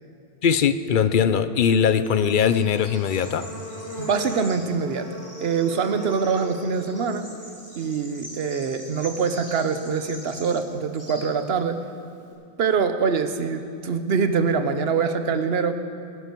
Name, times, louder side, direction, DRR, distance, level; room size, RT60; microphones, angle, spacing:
voice 1, 0.4-3.5, left 7 dB, 60° left, 12 dB, 0.7 m, -20 dB
Bird / Insect, 1.7-12.3, equal, 15° left, 3.3 m, -40 dB
voice 2, 4.0-5.1 5.4-7.2 7.7-11.8 12.6-15.7, right 5 dB, 75° right, 9 dB, 1.1 m, -24 dB
21.0 x 11.0 x 4.5 m, 2.5 s
omnidirectional pair, 1.0 m